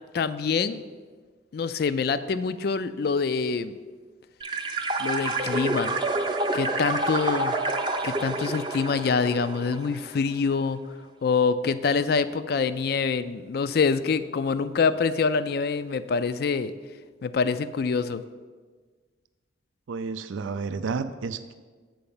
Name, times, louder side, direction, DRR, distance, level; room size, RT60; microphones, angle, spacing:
voice 1, 0.1-0.8 1.5-3.8 5.0-6.0 6.5-7.6 8.0-10.8 11.2-16.7 17.2-18.2, left 5 dB, 55° left, 13 dB, 0.3 m, -25 dB
sound 1, 4.4-10.1, right 2 dB, 25° right, 0.6 m, -28 dB
voice 2, 19.9-21.5, right 4 dB, 85° right, 11 dB, 0.4 m, -31 dB
7.7 x 4.8 x 7.0 m, 1.5 s
head